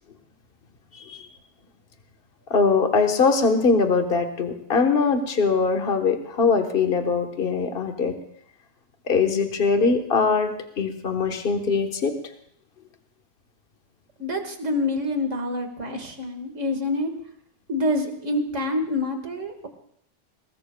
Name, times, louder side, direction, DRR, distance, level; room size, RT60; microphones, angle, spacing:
voice 1, 0.9-1.3 2.5-8.1 9.1-10.5 10.8-12.1, left 4 dB, 45° left, 5 dB, 1.4 m, -22 dB
voice 2, 14.2-17.1 17.7-19.7, left 1 dB, 70° right, 5 dB, 2.2 m, -27 dB
22.5 x 19.0 x 2.3 m, 0.68 s
omnidirectional pair, 1.3 m